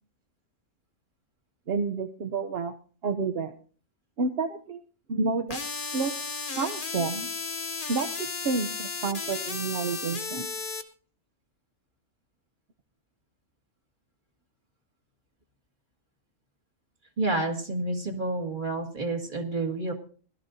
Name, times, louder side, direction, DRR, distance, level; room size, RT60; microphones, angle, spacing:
voice 1, 1.7-2.7 3.0-3.5 4.2-4.8 5.1-5.6 5.9-6.1 6.5-7.3 7.9-10.5, right 4 dB, 55° right, 6 dB, 0.8 m, -29 dB
sound 1, 5.5-10.8, left 4 dB, 40° left, 1.2 m, -34 dB
voice 2, 17.2-19.9, right 2 dB, 35° right, 3 dB, 2.1 m, -29 dB
20.5 x 12.5 x 2.7 m, 0.40 s
omnidirectional pair, 1.5 m